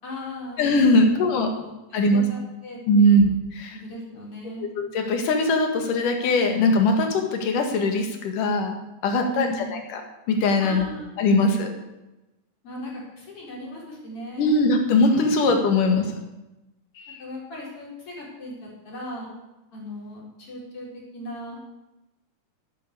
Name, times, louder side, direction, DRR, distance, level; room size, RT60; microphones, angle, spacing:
voice 1, 0.0-0.7 1.0-1.2 1.5-3.2 3.7-4.7 9.2-9.8 10.6-11.4 12.6-14.6 15.7-16.2 17.2-19.3 19.7-21.6, equal, 45° left, -3 dB, 5.3 m, -37 dB
voice 2, 0.6-1.5 1.9-2.2 2.9-3.3 3.6-3.7 4.6-8.7 9.0-10.0 10.3-10.8 11.2-11.7 14.4-16.0 17.0-17.2, left 1 dB, 90° left, 4 dB, 3.4 m, -20 dB
11.5 x 9.3 x 8.4 m, 1.0 s
omnidirectional pair, 3.6 m